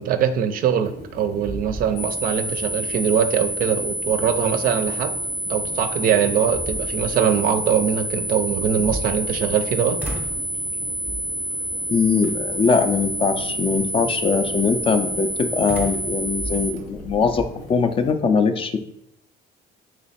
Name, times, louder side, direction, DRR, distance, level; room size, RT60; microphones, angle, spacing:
voice 1, 0.0-5.1 5.5-10.0, right 8 dB, 60° right, 9 dB, 0.4 m, -22 dB
sound 1, 0.8-18.1, left 1 dB, 80° left, 1.1 m, -41 dB
sound 2, 1.0-1.1 1.4-2.4 2.8-2.9 5.6-5.7 6.3-7.2 8.5-9.6 10.0-10.5 11.0-11.4 12.2-12.7 15.7-17.5, right 1 dB, 10° right, 0.6 m, -34 dB
sound 3, 2.0-16.7, right 1 dB, 60° left, 0.7 m, -28 dB
voice 2, 11.9-17.4 17.7-18.8, left 5 dB, 30° left, 8 dB, 0.4 m, -21 dB
3.0 x 3.0 x 4.2 m, 0.74 s
cardioid pair, 110°, 17 cm